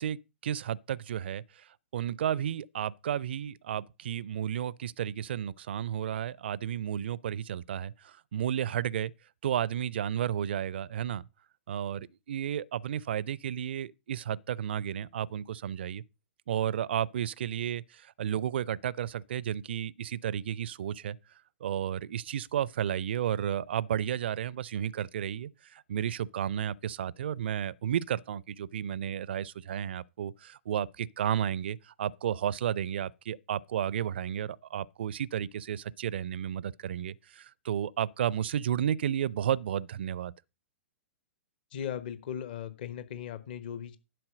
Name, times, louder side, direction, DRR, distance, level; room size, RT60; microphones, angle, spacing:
voice 1, 0.0-1.4 1.9-9.1 9.4-11.2 11.7-16.0 16.5-21.2 21.6-40.3, right 10 dB, 55° right, 0.5 m, -32 dB
voice 2, 41.7-44.0, left 9 dB, 45° left, 1.1 m, -38 dB
11.0 x 4.4 x 6.4 m
figure-of-eight pair, 110°, 7 cm